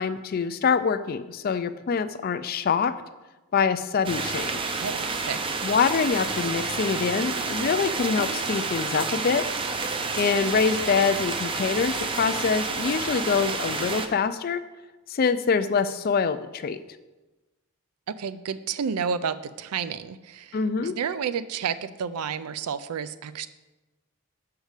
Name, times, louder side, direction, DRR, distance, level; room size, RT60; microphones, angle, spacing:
voice 1, 0.0-2.9 3.5-4.7 5.6-9.5 10.2-14.6 15.1-16.8 20.5-21.0, left 5 dB, 40° left, 12 dB, 0.3 m, -25 dB
sound 1, 4.0-14.1, right 4 dB, 25° right, 0.4 m, -29 dB
voice 2, 4.8-5.4 18.1-23.5, right 6 dB, 85° right, 14 dB, 0.4 m, -31 dB
6.4 x 4.8 x 6.5 m, 1.1 s
head